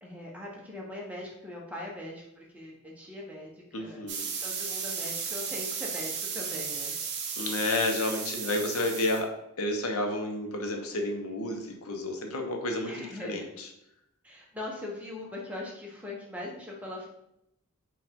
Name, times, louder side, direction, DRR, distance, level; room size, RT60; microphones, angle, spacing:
voice 1, 0.0-2.2 2.5-3.5 3.8-4.1 4.4-6.9 12.8-13.5 14.2-17.1, left 1 dB, 5° right, -3 dB, 0.8 m, -40 dB
voice 2, 3.7-4.3 7.4-9.3 9.6-13.7, left 2 dB, 75° left, 3 dB, 0.7 m, -31 dB
sound 1, 4.1-9.2, right 6 dB, 50° right, 0.6 m, -35 dB
4.9 x 2.4 x 3.5 m, 0.80 s
head